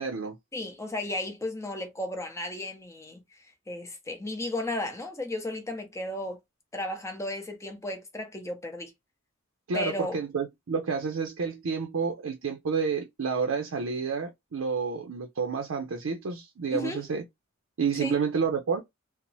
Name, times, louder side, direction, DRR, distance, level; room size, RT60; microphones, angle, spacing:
voice 1, 0.0-0.4 9.7-17.2 17.8-18.8, right 5 dB, 85° right, 0.5 m, -29 dB
voice 2, 0.5-3.2 3.7-6.4 6.7-8.9 9.7-10.2 16.7-17.0 18.0-18.2, left 1 dB, 15° left, 0.7 m, -34 dB
2.9 x 2.0 x 2.6 m
head